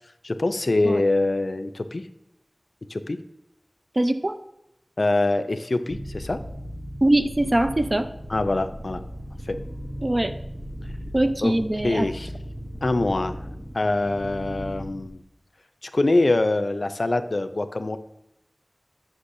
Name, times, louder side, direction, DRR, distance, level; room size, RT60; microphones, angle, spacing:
voice 1, 0.2-2.1 2.9-3.2 5.0-6.4 8.3-9.0 9.5-9.6 11.4-11.5 11.8-12.3 12.8-13.3 13.7-15.2 15.8-18.0, left 2 dB, 70° left, 9 dB, 0.4 m, -24 dB
voice 2, 4.0-4.4 7.0-8.1 10.0-10.3 11.1-12.1, right 1 dB, 45° right, 8 dB, 0.5 m, -22 dB
sound 1, 5.9-15.1, equal, 10° right, 0.7 m, -37 dB
8.1 x 5.9 x 2.6 m, 0.84 s
wide cardioid pair, 45°, 0 cm